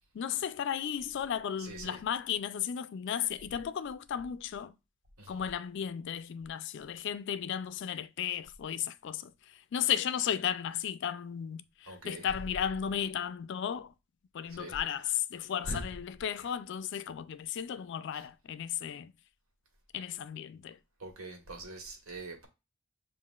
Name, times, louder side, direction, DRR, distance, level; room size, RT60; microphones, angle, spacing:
voice 1, 0.1-4.7 5.3-9.3 9.7-13.9 14.3-19.1 19.9-20.8, left 9 dB, 60° left, 0.3 m, -34 dB
voice 2, 1.6-2.0 5.2-5.5 11.8-12.3 14.5-14.8 15.6-15.9 18.1-18.2 21.0-22.5, right 1 dB, 90° right, 1.4 m, -42 dB
7.2 x 2.4 x 2.3 m
head